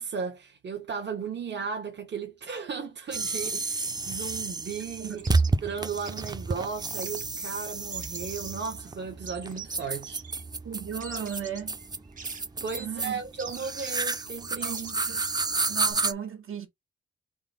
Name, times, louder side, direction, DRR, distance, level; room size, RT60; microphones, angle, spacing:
voice 1, 0.0-5.2 5.6-10.2 12.6-14.8, right 5 dB, 55° right, 1.1 m, -35 dB
sound 1, 3.1-16.1, right 3 dB, 20° right, 0.4 m, -31 dB
sound 2, 5.1-15.9, right 5 dB, 40° right, 1.3 m, -45 dB
voice 2, 10.6-11.8 12.8-13.2 14.6-15.2 15.7-16.7, right 8 dB, 85° right, 1.8 m, -36 dB
3.9 x 3.4 x 3.9 m
wide cardioid pair, 135°, 21 cm